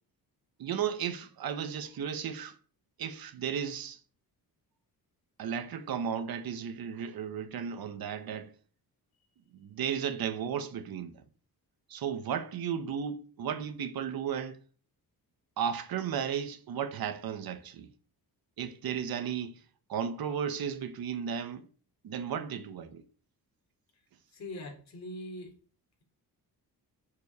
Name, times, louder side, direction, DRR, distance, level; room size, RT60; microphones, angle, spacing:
voice 1, 0.6-2.5 3.0-4.0 5.4-8.5 9.5-11.2 11.9-14.6 15.6-17.9 18.6-19.6 19.9-21.7 22.0-23.0, right 8 dB, 70° right, 1.3 m, -34 dB
voice 2, 24.3-25.5, left 1 dB, 45° left, 3.7 m, -41 dB
10.0 x 7.1 x 6.8 m
wide cardioid pair, 160°, 37 cm